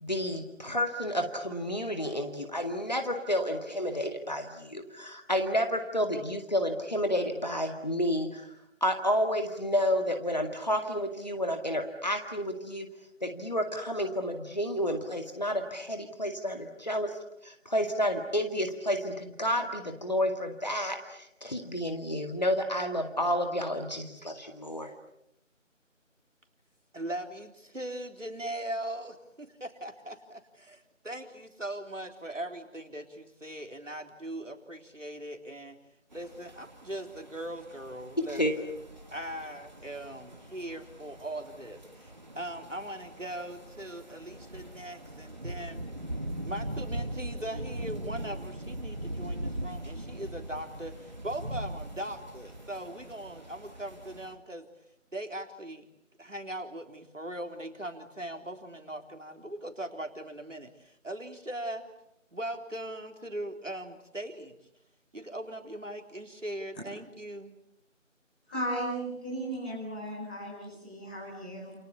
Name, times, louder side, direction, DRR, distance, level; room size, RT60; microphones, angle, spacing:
voice 1, 0.0-8.5 8.8-12.9 13.2-17.1 17.4-24.9 38.2-38.5, equal, 35° left, 5 dB, 2.1 m, -30 dB
voice 2, 26.9-35.8 36.1-38.7 39.1-45.8 46.4-54.7 55.1-55.9 56.2-61.9 62.3-64.5 65.1-67.5, right 1 dB, 70° right, 5 dB, 3.7 m, -40 dB
sound 1, 36.1-54.3, right 1 dB, 35° right, 2.5 m, -41 dB
voice 3, 68.5-71.7, right 1 dB, 5° left, -8 dB, 5.3 m, -36 dB
29.0 x 29.0 x 7.0 m, 0.81 s
figure-of-eight pair, 170°, 39 cm